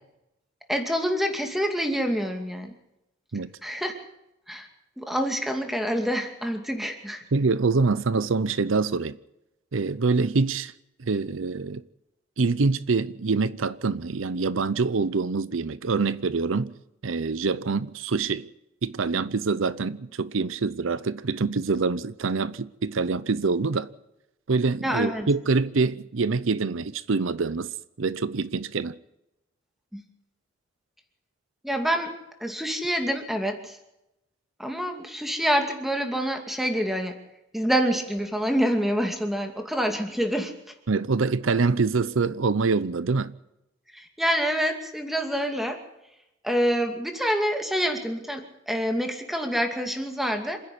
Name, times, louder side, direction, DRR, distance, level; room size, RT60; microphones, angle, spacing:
voice 1, 0.7-2.7 3.6-4.0 4.5-4.7 5.0-7.2 24.8-25.3 29.9-30.0 31.6-32.1 32.4-33.8 34.6-37.2 37.5-40.5 43.9-45.8 46.4-50.6, equal, ahead, 2.4 m, -27 dB
voice 2, 7.3-9.2 9.7-10.7 11.0-11.8 12.4-16.7 17.0-18.5 18.8-23.9 24.5-29.0 40.9-43.3, right 4 dB, 80° right, 0.7 m, -25 dB
27.0 x 10.5 x 10.0 m
head